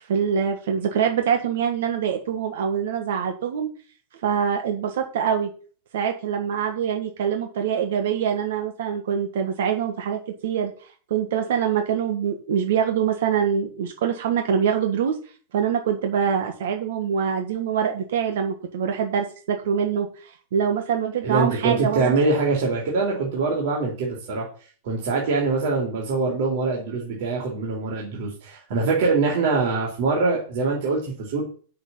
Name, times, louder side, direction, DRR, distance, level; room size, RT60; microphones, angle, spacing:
voice 1, 0.1-3.7 4.2-5.5 5.9-10.7 11.1-15.2 15.5-22.1, right 7 dB, 75° right, 5 dB, 1.6 m, -24 dB
voice 2, 21.2-24.5 24.8-31.4, right 3 dB, 55° right, -3 dB, 3.2 m, -23 dB
9.0 x 6.8 x 5.7 m, 0.40 s
supercardioid pair, 170°, 0 cm